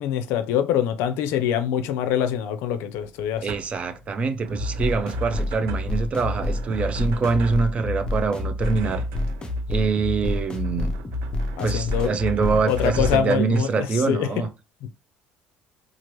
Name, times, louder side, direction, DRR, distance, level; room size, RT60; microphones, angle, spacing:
voice 1, 0.0-3.5 11.6-12.1 12.7-14.3, left 9 dB, 80° left, 0.5 m, -24 dB
sound 1, 3.1-13.6, right 6 dB, 75° right, 0.6 m, -41 dB
voice 2, 3.4-9.0 9.7-10.9 11.6-14.5, right 4 dB, 30° right, 0.5 m, -24 dB
sound 2, 4.5-13.2, left 2 dB, 20° left, 0.6 m, -28 dB
2.8 x 2.4 x 3.0 m
cardioid pair, 135°, 4 cm